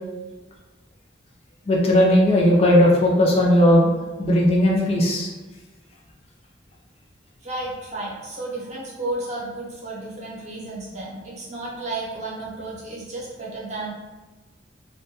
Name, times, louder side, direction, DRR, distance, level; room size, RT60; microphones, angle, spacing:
voice 1, 1.7-5.3, equal, 35° left, -3 dB, 0.3 m, -17 dB
voice 2, 7.4-13.9, right 2 dB, 40° right, -5 dB, 0.7 m, -32 dB
2.2 x 2.1 x 2.8 m, 1.2 s
head